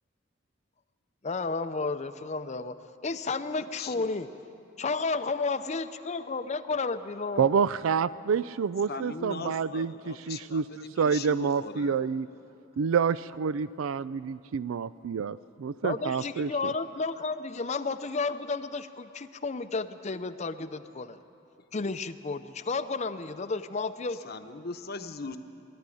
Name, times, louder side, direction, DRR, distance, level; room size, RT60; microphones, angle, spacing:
voice 1, 1.2-2.8 3.0-4.3 4.8-7.5 15.8-21.2 21.7-24.3, left 3 dB, 35° left, 11 dB, 0.6 m, -32 dB
voice 2, 3.5-4.1 8.9-12.0 24.2-25.4, left 4 dB, 50° left, 7 dB, 0.9 m, -40 dB
voice 3, 7.4-12.3 12.8-16.5, right 6 dB, 85° right, 17 dB, 0.4 m, -28 dB
21.0 x 13.5 x 9.9 m, 2.7 s
head